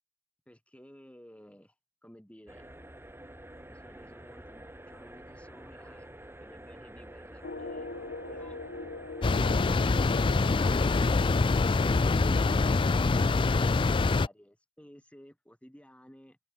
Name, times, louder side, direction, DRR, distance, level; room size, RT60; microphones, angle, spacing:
voice 1, 0.5-1.7 2.0-2.7 3.7-8.6 9.7-16.4, equal, 5° left, 6.2 m, -55 dB
sound 1, 2.5-11.1, right 1 dB, 10° right, 7.2 m, -48 dB
sound 2, 7.4-13.0, left 2 dB, 45° left, 2.0 m, -43 dB
sound 3, 9.2-14.3, left 3 dB, 25° left, 0.3 m, -25 dB
head